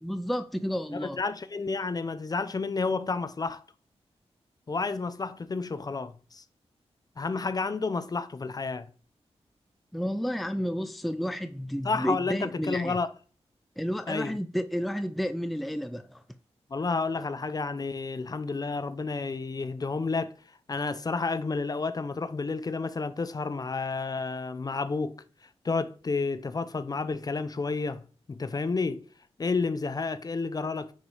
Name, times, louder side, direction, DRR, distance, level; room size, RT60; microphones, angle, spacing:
voice 1, 0.0-1.2 9.9-13.0 13.8-16.2, equal, ahead, 0.4 m, -31 dB
voice 2, 0.9-3.6 4.7-6.4 7.2-8.9 11.8-13.1 14.1-14.4 16.7-20.3 20.7-25.2 25.6-28.0 28.3-29.0 29.4-30.9, left 4 dB, 35° left, 0.7 m, -30 dB
9.5 x 4.9 x 4.9 m
wide cardioid pair, 150°, 11 cm